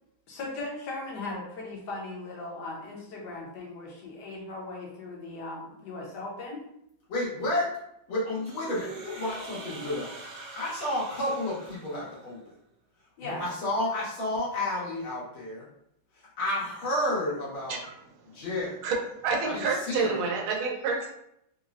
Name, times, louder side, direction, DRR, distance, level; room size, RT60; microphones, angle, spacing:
voice 1, 0.3-6.6 13.2-13.5, left 2 dB, 65° left, -2 dB, 1.3 m, -38 dB
voice 2, 7.1-7.7 8.1-10.1 10.5-12.4 13.2-15.7 16.2-17.8 18.3-18.9 19.4-20.1, left 1 dB, 90° left, -7 dB, 2.0 m, -31 dB
sound 1, 8.4-12.5, right 3 dB, 60° right, 1.3 m, -44 dB
voice 3, 17.7-18.4 18.8-21.1, right 4 dB, 90° right, 0 dB, 1.4 m, -29 dB
4.2 x 2.1 x 2.4 m, 0.77 s
omnidirectional pair, 2.2 m